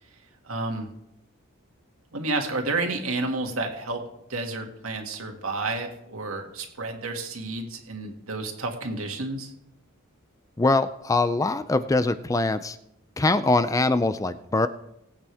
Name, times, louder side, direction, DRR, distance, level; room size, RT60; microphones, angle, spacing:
voice 1, 0.4-0.9 2.1-4.0 4.3-9.5, right 2 dB, 75° right, 3 dB, 2.2 m, -30 dB
voice 2, 10.6-12.8 13.2-14.7, left 2 dB, 15° left, 12 dB, 0.4 m, -23 dB
21.0 x 8.9 x 3.5 m, 0.81 s
head